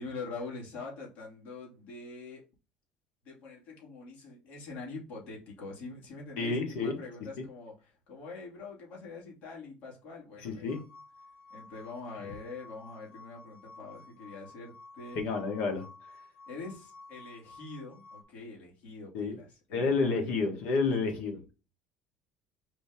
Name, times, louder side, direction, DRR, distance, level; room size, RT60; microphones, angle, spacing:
voice 1, 0.0-2.4 3.2-10.8 11.5-15.2 16.5-20.3, left 3 dB, 55° left, 2.5 m, -44 dB
voice 2, 6.4-6.9 10.4-10.8 15.1-15.8 19.1-19.4 19.7-21.4, left 4 dB, 75° left, 1.5 m, -29 dB
sound 1, 10.7-18.2, left 3 dB, 35° left, 1.2 m, -53 dB
5.0 x 2.9 x 3.6 m
cardioid pair, 140°, 3 cm